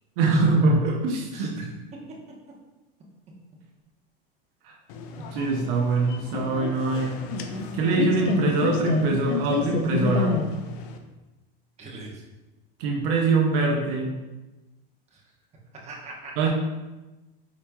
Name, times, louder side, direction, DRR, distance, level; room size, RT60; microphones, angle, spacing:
voice 1, 0.2-1.5 4.6-4.7 5.2-7.2 7.7-10.4 12.8-14.1 16.4-16.5, right 3 dB, 65° right, 0 dB, 0.8 m, -23 dB
voice 2, 1.3-1.7 11.8-12.2 15.1-15.2 15.7-16.5, right 2 dB, 20° right, -3 dB, 1.0 m, -41 dB
sound 1, 4.9-11.0, left 5 dB, 60° left, 0.6 m, -28 dB
4.9 x 4.2 x 2.3 m, 1.1 s
supercardioid pair, 125°, 30 cm